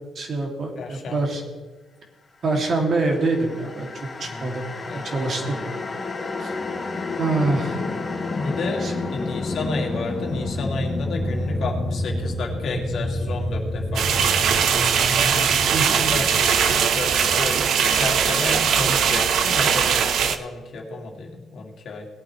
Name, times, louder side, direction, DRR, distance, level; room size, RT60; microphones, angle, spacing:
voice 1, 0.1-1.4 2.4-3.9 4.2-4.6 4.9-5.6 6.4-6.5 7.2-7.8 8.8-8.9 15.7-16.1, right 3 dB, 50° right, 1 dB, 2.7 m, -25 dB
voice 2, 0.7-1.4 4.2-5.1 5.4-5.8 8.3-8.8 9.1-22.1, left 3 dB, 65° left, 0 dB, 2.4 m, -32 dB
sound 1, 2.9-18.1, left 2 dB, 30° left, 1.8 m, -30 dB
sound 2, 13.9-20.4, right 7 dB, 70° right, 0.8 m, -20 dB
19.0 x 8.9 x 3.3 m, 1.3 s
cardioid pair, 90°, 0 cm